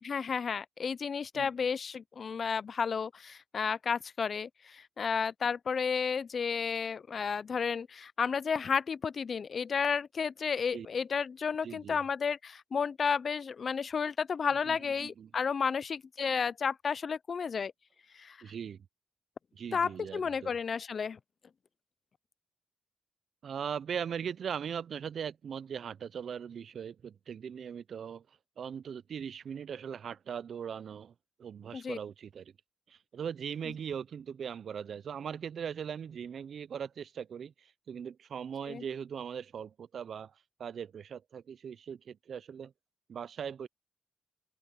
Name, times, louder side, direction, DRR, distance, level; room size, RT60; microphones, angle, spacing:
voice 1, 0.0-17.7 18.2-18.4 19.7-21.2 31.7-32.0 38.7-38.8, left 6 dB, 45° left, 0.4 m, -32 dB
voice 2, 11.6-12.0 14.6-15.3 18.4-18.9 19.5-20.6 23.4-28.2 28.6-31.1 31.4-32.5 32.9-40.3 40.6-42.7 43.1-43.7, right 7 dB, 60° right, 0.4 m, -40 dB
cardioid pair, 120°, 0 cm